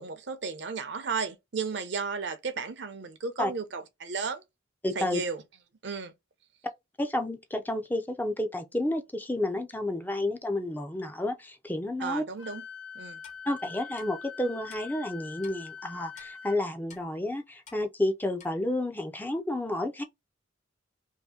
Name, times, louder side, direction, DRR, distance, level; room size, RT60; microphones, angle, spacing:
voice 1, 0.0-4.4 5.0-5.4 5.8-6.1 12.0-12.6 12.9-13.2, right 5 dB, 65° right, 0.6 m, -34 dB
voice 2, 4.8-5.2 7.0-12.2 13.5-20.0, left 1 dB, 10° left, 0.4 m, -31 dB
Wind instrument woodwind instrument, 12.4-16.6, left 6 dB, 75° left, 0.7 m, -44 dB
Clock, 13.2-13.4 14.0-14.1 14.7-14.8 15.4-15.6 16.2-16.3 16.9-17.1 17.7-17.8 18.4-18.5, left 6 dB, 40° left, 0.8 m, -51 dB
2.8 x 2.6 x 3.5 m
head